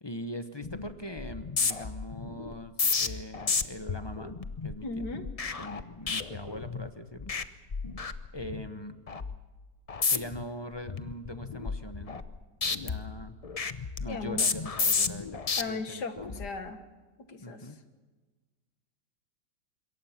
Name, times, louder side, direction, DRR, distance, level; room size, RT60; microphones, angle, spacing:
voice 1, 0.0-5.1 5.6-7.3 8.3-9.0 10.1-12.2 12.6-13.4 14.0-16.4 17.4-17.8, left 1 dB, 20° left, 9 dB, 0.8 m, -41 dB
sound 1, 0.6-0.9 1.2-6.9 7.2-7.4 7.7-8.7 9.1-9.3 9.9-10.4 10.8-12.3 12.6-15.6 16.2-16.5, left 5 dB, 45° left, 0.5 m, -32 dB
voice 2, 4.8-5.3 14.1-14.4 15.6-16.8 17.3-17.7, left 3 dB, 70° left, 8 dB, 2.1 m, -37 dB
26.5 x 22.5 x 5.9 m, 1.3 s
omnidirectional pair, 1.9 m